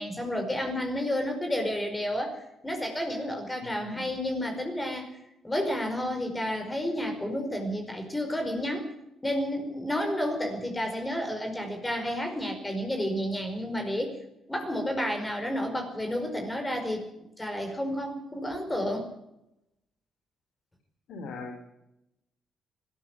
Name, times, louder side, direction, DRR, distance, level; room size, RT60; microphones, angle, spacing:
voice 1, 0.0-2.4 2.6-5.1 5.4-8.9 9.2-14.1 14.5-19.1, equal, 15° left, 4 dB, 5.1 m, -31 dB
voice 2, 3.6-4.1 21.1-21.6, left 2 dB, 75° left, 3 dB, 4.1 m, -40 dB
20.5 x 14.0 x 9.9 m, 0.86 s
cardioid pair, 90°, 0 cm